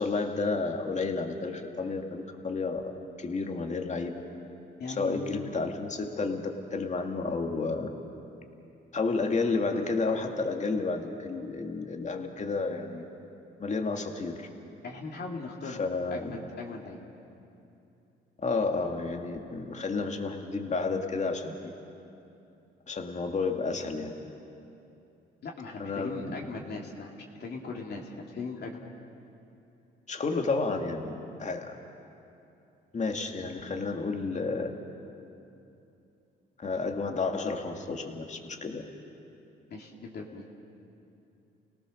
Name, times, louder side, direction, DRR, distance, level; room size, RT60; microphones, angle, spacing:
voice 1, 0.0-2.8 3.2-4.2 4.9-7.9 8.9-13.0 13.6-14.5 15.6-16.4 18.4-21.7 22.9-24.1 25.8-26.4 30.1-31.7 32.9-34.7 36.6-38.8, left 3 dB, 35° left, 3 dB, 2.2 m, -31 dB
voice 2, 4.8-5.3 14.8-15.8 16.1-17.0 25.4-28.8 39.7-40.5, left 3 dB, 55° left, -1 dB, 2.5 m, -39 dB
29.5 x 18.0 x 6.5 m, 2.8 s
cardioid pair, 90°, 20 cm